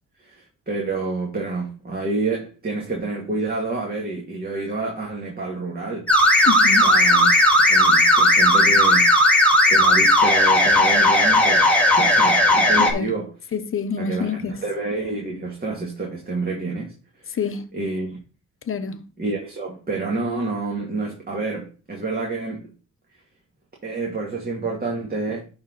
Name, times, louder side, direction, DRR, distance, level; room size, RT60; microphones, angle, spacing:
voice 1, 0.2-6.1 6.8-9.1 9.6-13.3 14.0-17.4 17.7-18.1 19.2-22.7 23.8-25.5, right 3 dB, 30° right, 2.0 m, -28 dB
sound 1, 6.1-12.9, left 1 dB, 5° left, 2.0 m, -16 dB
voice 2, 6.5-6.9 12.8-13.2 13.5-14.6 17.3-17.7 18.7-19.0, left 6 dB, 45° left, 1.0 m, -27 dB
11.0 x 4.0 x 4.0 m
cardioid pair, 115°, 29 cm